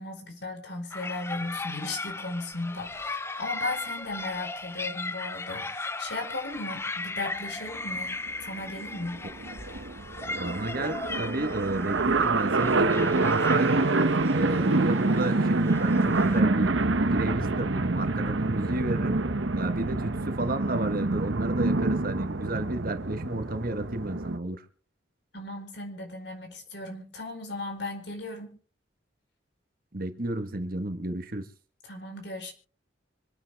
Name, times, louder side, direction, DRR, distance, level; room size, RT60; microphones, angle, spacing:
voice 1, 0.0-8.2 8.4-9.2 25.3-28.5 31.8-32.5, left 2 dB, 60° left, 4.6 m, -36 dB
sound 1, 0.9-16.4, left 3 dB, 15° left, 0.6 m, -37 dB
sound 2, 7.9-8.0 8.3-8.4 8.5-24.4, right 3 dB, 75° right, 1.0 m, -26 dB
voice 2, 10.3-13.9 14.3-16.8 17.1-19.2 19.5-24.6 29.9-31.5, right 1 dB, 50° right, 1.6 m, -32 dB
26.0 x 9.7 x 3.6 m
head